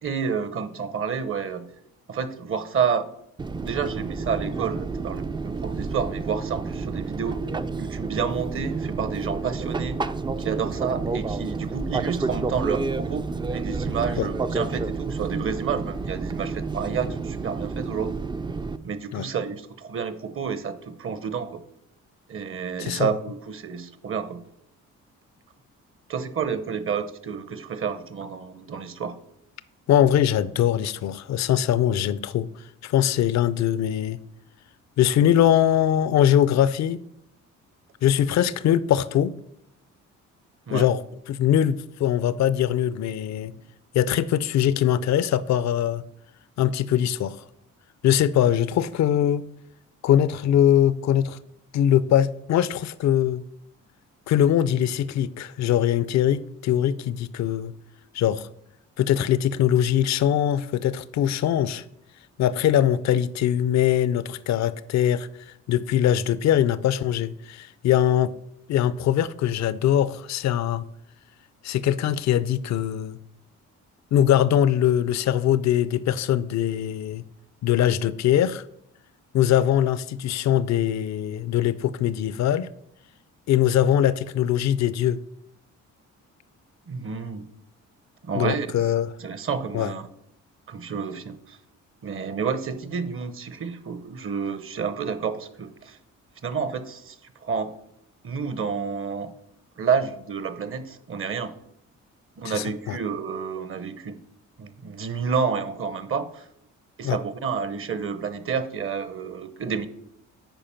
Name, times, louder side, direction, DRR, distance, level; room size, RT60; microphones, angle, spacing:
voice 1, 0.0-1.7 2.1-3.1 3.6-7.5 7.8-10.0 10.4-18.2 18.8-21.6 22.3-24.4 26.1-29.2 40.7-40.9 86.9-87.4 88.2-88.9 89.2-90.1 90.7-91.6 92.0-96.0 96.4-97.2 97.4-97.7 98.2-99.3 99.8-101.5 102.4-104.2 104.6-106.5 107.0-109.9, right 6 dB, 45° right, 0.9 m, -29 dB
Fixed-wing aircraft airplane, 3.4-18.8, right 4 dB, 15° right, 0.4 m, -30 dB
voice 2, 29.9-32.5 32.8-34.2 35.0-37.0 38.0-39.4 40.7-41.0 41.3-43.5 43.9-46.0 46.6-47.4 48.0-49.4 50.0-51.4 51.7-53.4 54.3-57.7 58.1-58.5 59.0-61.8 62.4-65.3 65.7-68.3 68.7-70.8 71.6-73.2 74.1-77.2 77.6-78.6 79.3-82.7 83.5-85.2 88.3-89.1 89.7-89.9 102.4-103.0 107.0-107.2, left 10 dB, 65° left, 0.5 m, -22 dB
9.1 x 4.9 x 5.8 m
cardioid pair, 90°, 30 cm